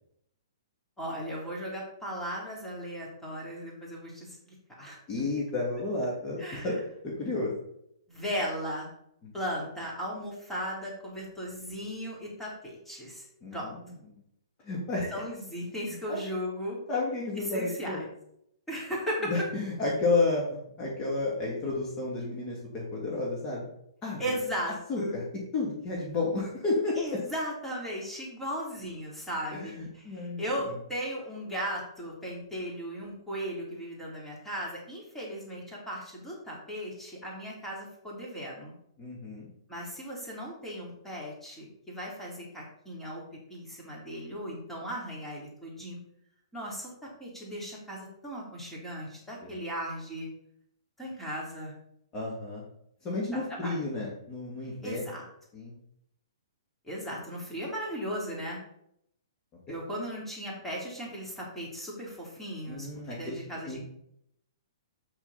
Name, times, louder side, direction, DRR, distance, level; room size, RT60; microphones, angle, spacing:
voice 1, 1.0-5.0 6.4-6.8 8.1-8.9 9.3-13.3 13.5-13.7 15.1-16.8 17.5-18.0 18.7-19.3 24.2-25.2 27.0-38.7 39.7-43.2 43.5-46.0 46.5-50.3 51.0-51.7 53.3-53.7 54.8-55.2 56.8-58.6 59.7-63.8, equal, 5° left, -4 dB, 3.5 m, -37 dB
voice 2, 5.1-7.5 9.2-9.3 13.4-13.9 14.6-15.2 16.1-16.2 16.9-18.1 19.2-23.6 24.0-24.3 24.9-25.2 25.5-27.0 29.5-30.7 39.0-39.5 49.4-49.5 52.1-52.6 53.0-55.0 55.5-55.8 59.7-59.8 62.7-63.8, left 3 dB, 30° left, -4 dB, 2.6 m, -32 dB
8.0 x 7.4 x 4.3 m, 0.75 s
hypercardioid pair, 125°, 3 cm